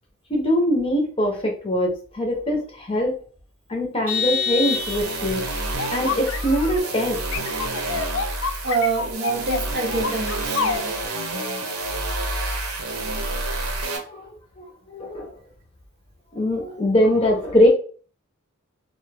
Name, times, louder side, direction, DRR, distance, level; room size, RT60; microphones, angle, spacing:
voice 1, 0.3-3.1 3.7-7.8 14.1-14.3 14.6-15.3 16.3-17.7, equal, 25° left, 0.6 m, -23 dB
Vehicle horn car horn honking, 4.1-5.5, left 6 dB, 10° right, 0.8 m, -26 dB
sound 1, 4.6-14.0, right 2 dB, 80° right, 0.8 m, -29 dB
sound 2, 5.8-6.8 7.3-10.8, left 6 dB, 60° left, 0.3 m, -28 dB
voice 2, 8.6-10.9, right 4 dB, 50° right, 0.5 m, -26 dB
2.7 x 2.2 x 3.2 m
head